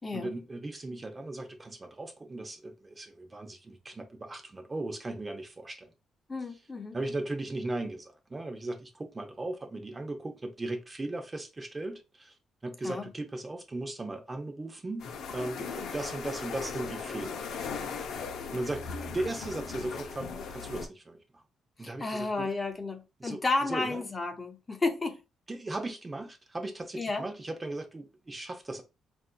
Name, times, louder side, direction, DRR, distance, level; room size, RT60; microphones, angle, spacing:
voice 1, 0.1-5.9 6.9-12.3 12.6-15.0 15.3-17.4 18.5-21.4 21.8-22.5 23.2-23.4 23.7-24.0 25.5-28.8, right 2 dB, 25° right, 0.7 m, -37 dB
voice 2, 6.3-7.0 12.8-13.1 21.8-25.2 26.9-27.3, left 3 dB, 25° left, 0.6 m, -32 dB
sound 1, 15.0-20.9, left 5 dB, 75° left, 0.6 m, -38 dB
4.0 x 2.6 x 2.3 m
cardioid pair, 90°, 0 cm